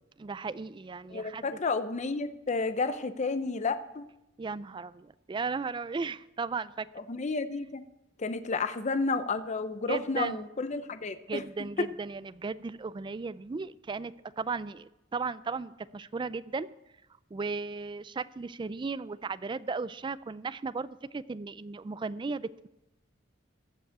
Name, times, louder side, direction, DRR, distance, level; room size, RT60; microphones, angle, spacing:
voice 1, 0.2-1.4 4.4-6.9 9.9-10.4 11.3-16.7 17.3-22.7, right 4 dB, 25° right, 17 dB, 0.3 m, -36 dB
voice 2, 1.1-4.1 7.0-7.8 8.2-11.9, left 4 dB, 40° left, 10 dB, 0.6 m, -31 dB
15.0 x 5.4 x 8.6 m, 0.92 s
head